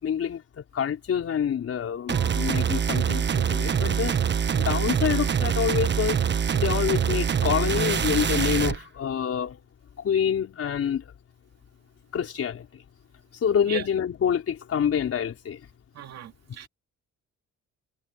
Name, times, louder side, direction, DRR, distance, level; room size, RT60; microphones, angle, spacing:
voice 1, 0.0-4.1 4.5-6.2 6.5-9.6 10.0-11.0 12.1-12.7 13.4-15.6, left 8 dB, 55° left, 4.9 m, -27 dB
sound 1, 2.1-8.8, right 7 dB, 40° right, 1.3 m, -24 dB
voice 2, 2.1-2.8 13.7-13.8 15.9-16.7, right 9 dB, 60° right, 2.5 m, -38 dB
cardioid pair, 105°, 29 cm